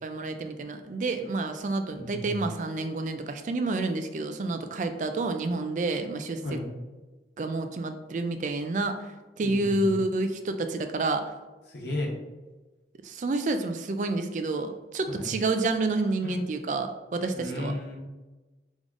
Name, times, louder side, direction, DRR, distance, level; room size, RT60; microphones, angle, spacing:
voice 1, 0.0-6.6 7.4-9.0 9.4-11.2 13.0-17.7, right 2 dB, 45° right, 7 dB, 0.3 m, -29 dB
voice 2, 1.9-2.4 6.4-6.6 9.4-9.9 11.7-12.1 15.1-15.3 16.2-16.3 17.3-18.0, left 1 dB, 80° left, -1 dB, 1.0 m, -34 dB
3.7 x 3.5 x 3.6 m, 1.2 s
head